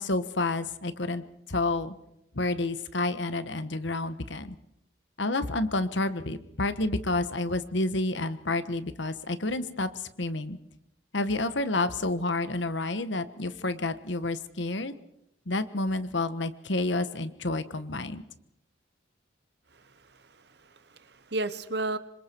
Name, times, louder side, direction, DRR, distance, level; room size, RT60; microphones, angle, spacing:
voice 1, 0.0-1.9 2.3-4.5 5.2-9.9 10.2-10.6 11.1-14.9 15.5-18.2, left 2 dB, 65° left, 11 dB, 1.4 m, -29 dB
voice 2, 19.7-22.0, right 2 dB, 55° right, 13 dB, 1.1 m, -34 dB
27.5 x 25.5 x 4.6 m, 0.79 s
head